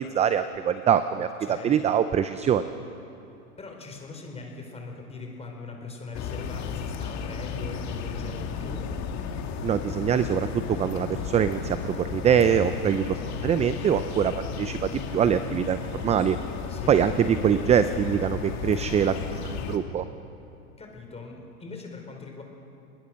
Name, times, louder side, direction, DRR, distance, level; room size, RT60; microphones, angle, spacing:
voice 1, 0.0-1.3 1.6-2.6 9.6-16.4 16.9-20.0, right 8 dB, 15° right, 12 dB, 0.6 m, -24 dB
voice 2, 1.4-1.9 3.6-8.9 16.7-17.1 20.8-22.4, left 3 dB, 15° left, 2 dB, 5.1 m, -41 dB
sound 1, 6.1-19.8, left 6 dB, 35° left, 2.4 m, -34 dB
29.0 x 20.5 x 6.4 m, 2.8 s
hypercardioid pair, 115°, 45 cm